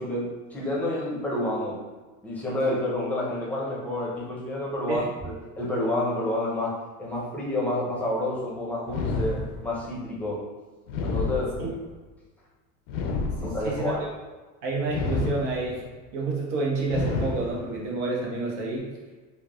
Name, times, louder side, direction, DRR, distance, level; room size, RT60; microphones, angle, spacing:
voice 1, 0.0-1.8 2.2-10.4 11.0-11.6 13.4-14.0, left 1 dB, 5° left, -5 dB, 0.6 m, -29 dB
sound 1, 8.9-9.9 10.9-12.0 12.9-13.9 14.9-15.9 16.9-17.9, left 4 dB, 85° left, 0.5 m, -30 dB
voice 2, 13.1-13.9 14.6-15.8 16.1-18.9, right 3 dB, 75° right, -3 dB, 1.0 m, -29 dB
3.3 x 2.2 x 2.4 m, 1.3 s
supercardioid pair, 130°, 36 cm